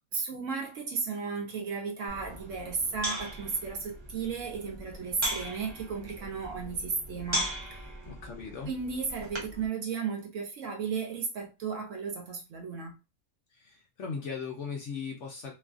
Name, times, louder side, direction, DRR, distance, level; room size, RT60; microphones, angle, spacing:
voice 1, 0.1-7.9 8.7-12.9, right 5 dB, 70° right, 0.8 m, -34 dB
sound 1, 2.1-9.7, equal, 30° right, 0.5 m, -38 dB
voice 2, 8.0-8.7 13.5-15.5, left 5 dB, 65° left, 0.7 m, -38 dB
3.0 x 2.4 x 2.4 m
omnidirectional pair, 1.6 m